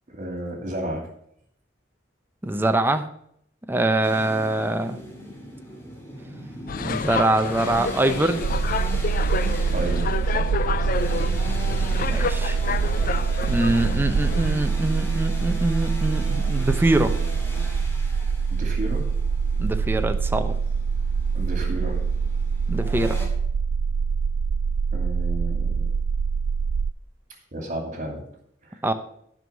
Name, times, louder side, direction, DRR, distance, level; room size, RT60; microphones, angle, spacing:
voice 1, 0.1-1.1 9.7-11.3 18.5-19.1 21.3-22.0 24.9-25.9 27.5-28.2 28.6-28.8, right 1 dB, 45° right, 2 dB, 2.5 m, -33 dB
voice 2, 2.4-3.1 3.7-5.0 6.8-8.4 12.1-12.6 13.5-17.1 19.6-20.5 22.7-23.2 28.8-28.9, right 1 dB, 10° right, 7 dB, 0.6 m, -23 dB
sound 1, 4.0-23.3, equal, 15° left, 2.1 m, -39 dB
sound 2, 6.7-14.5, left 5 dB, 50° left, 0.4 m, -29 dB
sound 3, 8.4-26.9, right 5 dB, 65° right, 0.3 m, -24 dB
9.2 x 5.5 x 6.9 m, 0.69 s
head